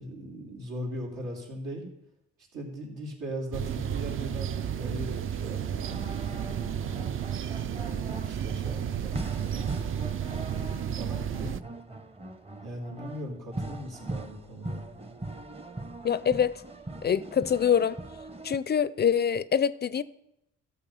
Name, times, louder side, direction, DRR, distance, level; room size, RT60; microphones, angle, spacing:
voice 1, 0.0-1.8 2.5-7.1 7.7-11.6 12.6-14.8, right 1 dB, 85° right, 3.3 m, -39 dB
sound 1, 3.5-11.6, right 9 dB, 45° right, 0.5 m, -32 dB
sound 2, 5.0-18.6, right 2 dB, 20° right, 0.8 m, -41 dB
voice 2, 16.0-16.6 17.0-18.0 18.4-20.0, left 8 dB, 35° left, 0.4 m, -25 dB
13.0 x 6.8 x 5.6 m
cardioid pair, 90°, 30 cm